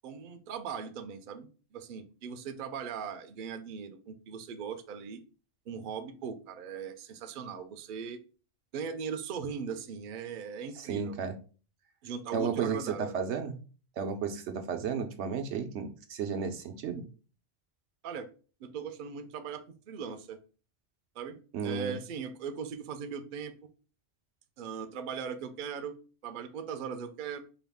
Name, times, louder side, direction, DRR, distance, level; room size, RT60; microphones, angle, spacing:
voice 1, 0.0-5.2 5.7-8.2 8.7-11.1 12.0-13.1 18.0-18.3 18.6-20.4 21.2-23.6 24.6-27.4, right 6 dB, 60° right, 8 dB, 0.6 m, -39 dB
voice 2, 10.8-11.3 12.3-13.6 14.0-17.0 21.5-22.0, right 6 dB, 85° right, 6 dB, 0.9 m, -33 dB
4.7 x 2.3 x 3.5 m, 0.37 s
omnidirectional pair, 1.1 m